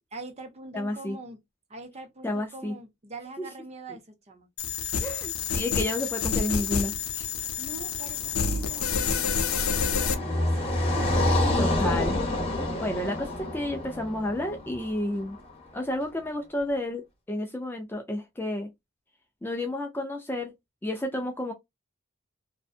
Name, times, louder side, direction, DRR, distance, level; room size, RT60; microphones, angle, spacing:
voice 1, 0.1-1.4 1.7-4.5 7.6-10.8, right 2 dB, 30° right, 0.6 m, -43 dB
voice 2, 0.7-1.2 2.2-2.7 3.4-3.5 5.0-7.3 11.6-12.2 12.8-15.4 15.7-18.7 19.4-20.5 20.8-21.5, left 1 dB, 10° left, 0.3 m, -31 dB
sound 1, 4.6-10.1, left 6 dB, 80° left, 0.5 m, -28 dB
Car passing by, 8.1-15.4, left 1 dB, 30° left, 0.8 m, -28 dB
2.6 x 2.1 x 2.4 m
head